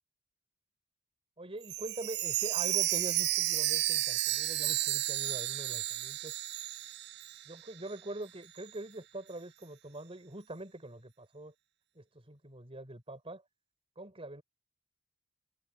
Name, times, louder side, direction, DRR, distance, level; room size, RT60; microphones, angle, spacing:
voice 1, 1.4-6.3 7.4-11.5 11.9-13.4 14.0-14.4, right 1 dB, 30° right, 5.0 m, -44 dB
Chime, 1.6-7.6 7.9-8.0 8.6-8.7, right 15 dB, 55° right, 0.5 m, -32 dB
head